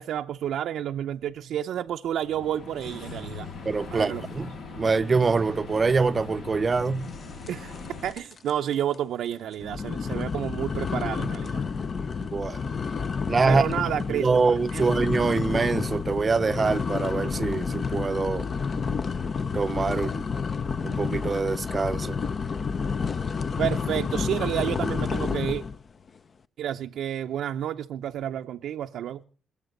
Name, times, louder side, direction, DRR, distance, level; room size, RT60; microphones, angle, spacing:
voice 1, 0.0-3.5 3.9-4.2 7.5-7.7 8.0-11.6 13.5-14.8 23.6-25.6 26.6-29.2, right 10 dB, 75° right, 0.6 m, -30 dB
sound 1, 2.1-8.1, left 4 dB, 75° left, 7.5 m, -40 dB
voice 2, 3.6-7.1 12.0-12.6 13.3-13.7 14.1-18.5 19.5-20.2 20.8-22.2, right 4 dB, 35° right, 0.6 m, -25 dB
sound 2, 7.5-7.9 8.1-8.5 8.9-9.0 9.6-25.8, left 5 dB, 40° left, 0.7 m, -30 dB
21.0 x 7.9 x 6.6 m
cardioid pair, 90°, 0 cm